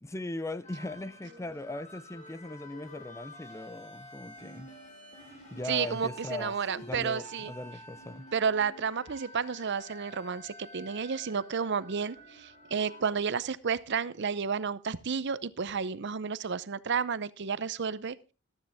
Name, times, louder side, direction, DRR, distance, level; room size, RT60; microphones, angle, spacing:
voice 1, 0.0-4.7 5.5-6.6 6.8-8.3, left 2 dB, 15° left, 0.6 m, -39 dB
sound 1, 0.6-13.0, equal, 35° left, 5.3 m, -49 dB
voice 2, 5.7-7.5 8.3-12.2 12.4-18.2, right 6 dB, 60° right, 0.7 m, -31 dB
14.5 x 13.0 x 3.5 m
head